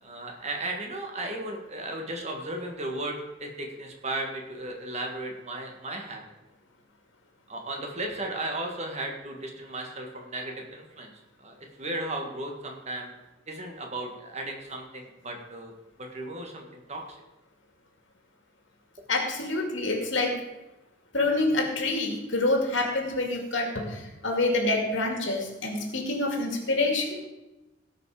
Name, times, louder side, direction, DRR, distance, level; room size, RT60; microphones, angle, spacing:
voice 1, 0.0-6.3 7.5-11.1 11.4-13.1 13.5-15.7 16.0-17.2, right 2 dB, 35° right, 2 dB, 1.7 m, -35 dB
voice 2, 19.1-20.4 21.1-27.3, left 2 dB, 70° left, 2 dB, 2.3 m, -27 dB
17.5 x 5.8 x 4.9 m, 0.99 s
head